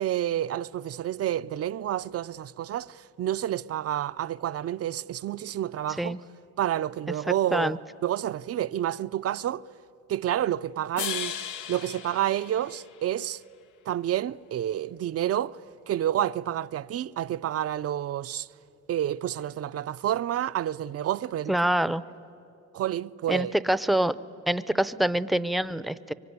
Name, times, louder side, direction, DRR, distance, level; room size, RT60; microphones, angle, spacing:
voice 1, 0.0-6.2 6.6-9.6 10.1-11.4 11.7-13.4 13.9-15.6 15.9-18.5 18.9-21.5 22.7-23.5, right 11 dB, 50° right, 0.5 m, -29 dB
sound 1, 11.0-13.3, left 9 dB, 90° left, 0.9 m, -36 dB
voice 2, 21.5-22.0 23.3-24.2 24.5-26.1, right 1 dB, ahead, 0.6 m, -25 dB
24.0 x 24.0 x 9.6 m
cardioid pair, 90°, 30 cm